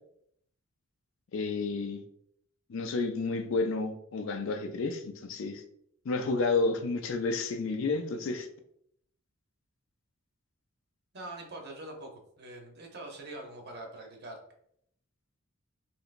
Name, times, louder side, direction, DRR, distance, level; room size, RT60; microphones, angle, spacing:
voice 1, 1.3-2.0 2.7-5.6 6.1-8.5, left 3 dB, 60° left, 7 dB, 0.4 m, -31 dB
voice 2, 11.1-14.4, right 2 dB, 45° right, 2 dB, 0.7 m, -44 dB
3.3 x 2.9 x 2.5 m, 0.70 s
head